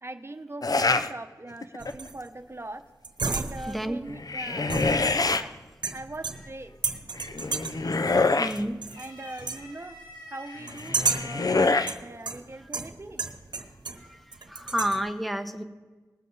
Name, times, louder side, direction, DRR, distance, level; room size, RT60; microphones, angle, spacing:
voice 1, 0.0-2.8 3.3-4.7 5.2-5.6 5.9-6.7 9.0-10.0 10.3-13.2, right 2 dB, 35° right, 8 dB, 1.0 m, -41 dB
sound 1, 0.6-1.1 1.6-2.1 4.1-5.4 7.2-8.6 10.6-11.9, left 3 dB, 60° left, 0.7 m, -25 dB
sound 2, 1.8-2.3 3.0-3.9 4.7-5.4 5.8-6.6 6.8-7.9 8.5-9.1 9.4-9.6 10.7-11.4 11.9-14.1 14.3-15.0, right 4 dB, 90° right, 1.0 m, -32 dB
voice 2, 3.7-4.0 8.4-8.8 14.0-15.6, equal, ahead, 8 dB, 1.1 m, -30 dB
sound 3, 8.2-8.4 8.8-10.7 11.6-11.7 13.0-13.4, equal, 90° left, 3.4 m, -48 dB
19.5 x 7.3 x 4.0 m, 1.3 s
wide cardioid pair, 55°, 7 cm